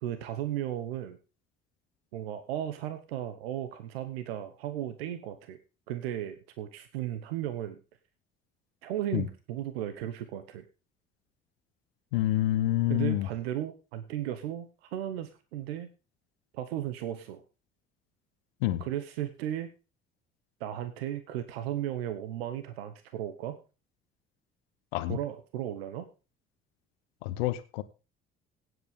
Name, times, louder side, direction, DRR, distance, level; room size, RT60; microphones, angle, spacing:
voice 1, 0.0-1.2 2.1-5.6 5.9-7.8 8.8-10.6 12.9-15.9 16.5-17.4 18.8-19.7 20.6-23.6 25.1-26.1, right 11 dB, 85° right, 1.0 m, -35 dB
voice 2, 12.1-13.3 18.6-18.8 24.9-25.2 27.2-27.8, left 14 dB, 85° left, 0.8 m, -27 dB
16.5 x 8.0 x 3.6 m
hypercardioid pair, 60°, 30 cm